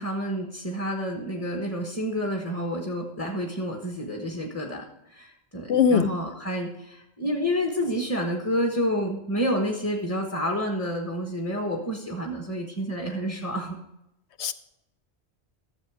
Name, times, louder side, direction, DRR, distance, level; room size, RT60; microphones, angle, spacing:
voice 1, 0.0-13.8, equal, 15° left, 1 dB, 1.1 m, -29 dB
voice 2, 5.7-6.1 14.4-14.5, left 7 dB, 75° left, 13 dB, 0.9 m, -20 dB
13.0 x 7.4 x 4.8 m, 0.86 s
omnidirectional pair, 1.1 m